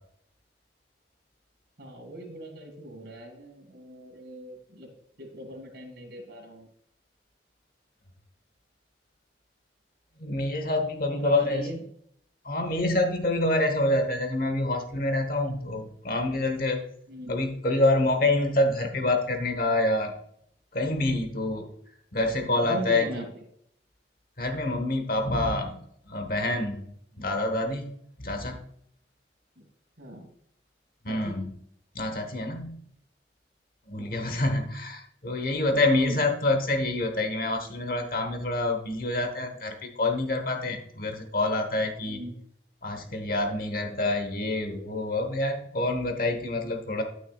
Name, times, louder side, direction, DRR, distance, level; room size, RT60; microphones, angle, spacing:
voice 1, 1.8-4.9 5.2-6.7 11.1-11.8 17.1-17.4 22.6-23.3 29.6-29.7 30.0-30.3 31.1-31.4 34.0-34.1 35.8-36.2 42.1-42.3, equal, 65° right, 2 dB, 2.1 m, -39 dB
voice 2, 10.2-11.7 12.4-16.8 17.3-20.1 20.7-21.7 22.1-23.1 24.4-26.9 27.2-28.6 31.0-31.5 31.9-32.8 33.9-42.2 42.8-47.0, left 2 dB, 50° left, 5 dB, 1.1 m, -27 dB
11.5 x 6.3 x 2.3 m, 0.68 s
head